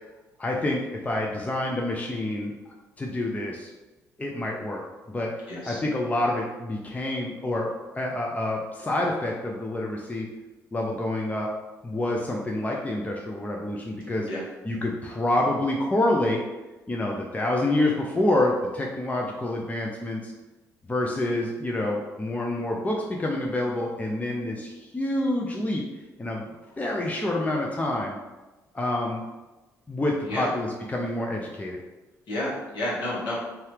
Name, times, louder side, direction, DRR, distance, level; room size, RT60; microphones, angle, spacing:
voice 1, 0.4-2.5 3.0-3.7 4.2-4.8 5.1-5.3 5.6-10.3 10.7-11.5 11.8-14.3 14.6-16.4 16.9-20.3 20.9-25.8 26.2-26.5 26.8-28.2 28.7-29.2 29.9-31.8, left 1 dB, 15° left, -1 dB, 0.5 m, -27 dB
voice 2, 5.5-5.8 14.3-14.4 30.2-30.5 32.3-33.4, left 1 dB, 60° left, -7 dB, 1.2 m, -30 dB
2.7 x 2.4 x 3.2 m, 1.1 s
hypercardioid pair, 45°, 9 cm